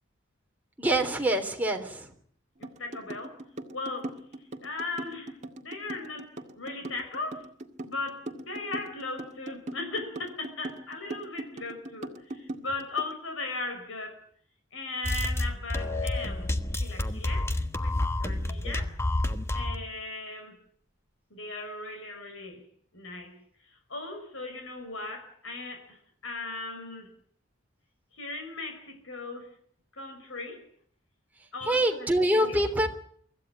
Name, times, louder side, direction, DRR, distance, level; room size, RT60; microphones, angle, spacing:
voice 1, 0.8-2.1 31.6-32.9, right 1 dB, 10° right, 3 dB, 3.4 m, -25 dB
voice 2, 2.6-3.4 3.7-7.5 7.8-14.2 14.7-17.9 18.2-18.9 19.5-20.6 21.3-22.7 22.9-23.4 23.6-27.1 28.1-29.5 29.9-30.6 31.5-32.6, left 3 dB, 85° left, 5 dB, 5.5 m, -38 dB
sound 1, 2.6-13.1, right 1 dB, 35° right, 2.0 m, -40 dB
sound 2, 15.0-19.9, left 1 dB, 15° left, 1.3 m, -29 dB
25.0 x 15.0 x 9.6 m, 0.62 s
head